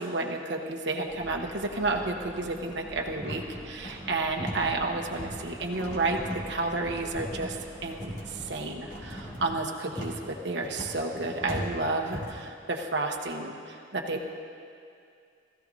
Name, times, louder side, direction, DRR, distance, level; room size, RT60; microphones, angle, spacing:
voice 1, 0.0-6.2 6.5-7.6 7.8-14.3, right 2 dB, 65° right, 1 dB, 1.1 m, -31 dB
sound 1, 1.1-9.4, right 1 dB, 10° right, 2.4 m, -46 dB
sound 2, 3.2-12.4, equal, 40° left, 2.4 m, -39 dB
19.0 x 14.5 x 2.8 m, 2.4 s
head